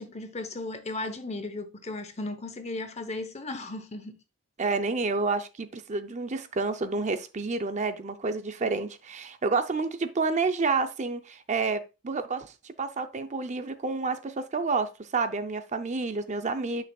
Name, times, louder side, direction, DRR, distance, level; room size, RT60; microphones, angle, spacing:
voice 1, 0.0-4.2, left 2 dB, 30° left, 0.8 m, -36 dB
voice 2, 4.6-16.8, right 4 dB, 35° right, 0.5 m, -29 dB
9.6 x 5.9 x 2.3 m
head